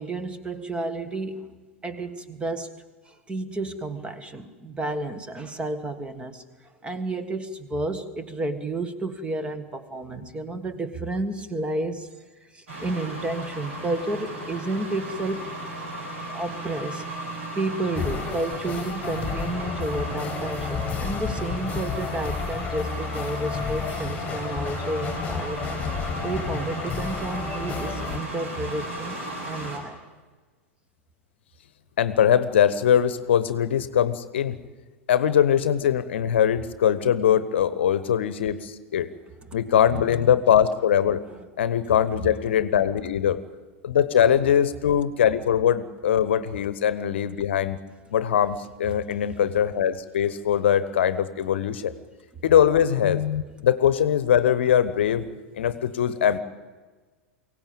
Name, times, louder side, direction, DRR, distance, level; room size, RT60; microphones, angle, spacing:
voice 1, 0.0-1.5 1.8-2.7 3.1-6.5 6.8-12.1 12.5-15.5 16.3-17.1 17.6-25.6 26.2-29.2 29.5-30.0 39.5-39.6, right 2 dB, 15° right, 12 dB, 1.6 m, -31 dB
sound 1, 12.7-29.8, right 2 dB, 65° right, 6.5 m, -35 dB
sound 2, 18.0-28.2, left 6 dB, 20° left, 1.8 m, -32 dB
voice 2, 32.0-34.6 35.1-39.1 39.5-41.2 41.6-43.4 43.8-47.8 48.1-51.9 52.4-55.3 55.6-56.4, left 9 dB, 60° left, 15 dB, 1.0 m, -21 dB
23.5 x 17.0 x 9.0 m, 1.3 s
figure-of-eight pair, 90°, 7 cm